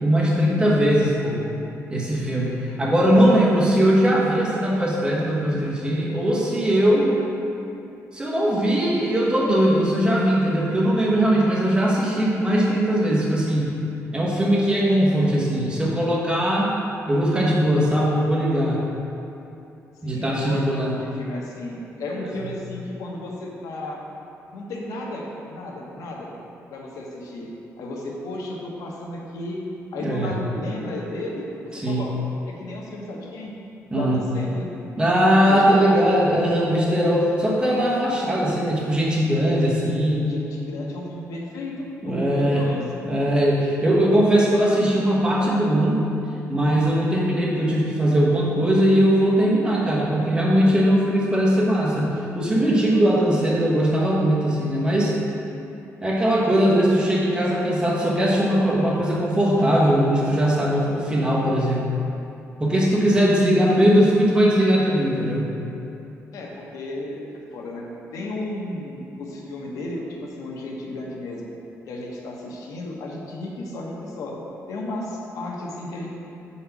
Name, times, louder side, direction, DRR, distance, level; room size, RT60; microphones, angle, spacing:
voice 1, 0.0-1.4 1.9-7.2 8.1-13.8 14.1-16.7 17.1-18.8 20.0-20.9 22.2-22.3 30.0-30.3 31.7-32.1 33.9-34.2 35.0-40.3 42.0-42.7 43.0-46.0 46.5-55.1 56.0-61.9 62.6-65.5, equal, 15° right, -5 dB, 1.1 m, -20 dB
voice 2, 20.0-24.0 24.5-26.3 26.7-27.5 27.8-29.6 29.9-31.5 31.9-32.2 32.5-33.5 33.9-34.7 35.5-36.1 40.3-42.8 66.3-67.2 67.5-67.8 68.1-71.5 71.9-74.4 74.7-76.1, left 2 dB, 85° left, -1 dB, 0.9 m, -33 dB
5.0 x 4.2 x 5.8 m, 2.8 s
cardioid pair, 140°, 6 cm